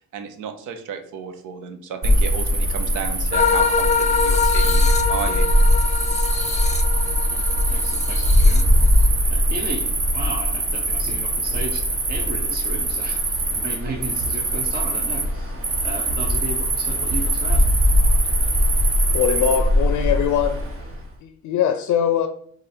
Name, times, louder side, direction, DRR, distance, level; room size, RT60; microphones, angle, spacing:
voice 1, 0.1-5.5, right 6 dB, 85° right, 0.7 m, -33 dB
Cricket, 2.0-20.9, equal, 45° right, 1.5 m, -20 dB
sound 1, 3.3-9.1, left 6 dB, 25° left, 0.5 m, -24 dB
voice 2, 7.3-8.8 9.3-11.8 12.1-17.6, right 2 dB, 30° right, 0.8 m, -34 dB
voice 3, 19.1-20.7 21.2-22.3, left 8 dB, 70° left, 0.5 m, -21 dB
4.9 x 2.5 x 4.3 m
cardioid pair, 90°, 30 cm